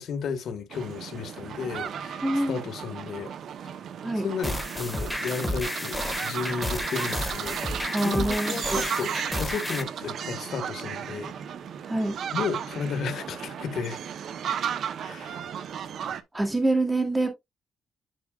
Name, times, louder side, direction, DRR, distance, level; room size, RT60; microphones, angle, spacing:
voice 1, 0.0-2.2 2.5-3.3 4.2-11.3 12.3-14.0 15.0-15.5, left 6 dB, 75° left, 1.6 m, -33 dB
sound 1, 0.7-16.2, right 8 dB, 70° right, 0.8 m, -35 dB
voice 2, 2.2-2.6 4.0-4.3 7.9-8.8 11.8-12.2 16.3-17.3, right 2 dB, 15° right, 2.5 m, -25 dB
sound 2, 4.4-9.8, left 1 dB, 5° left, 1.6 m, -31 dB
10.5 x 4.8 x 2.4 m
cardioid pair, 100°, 0 cm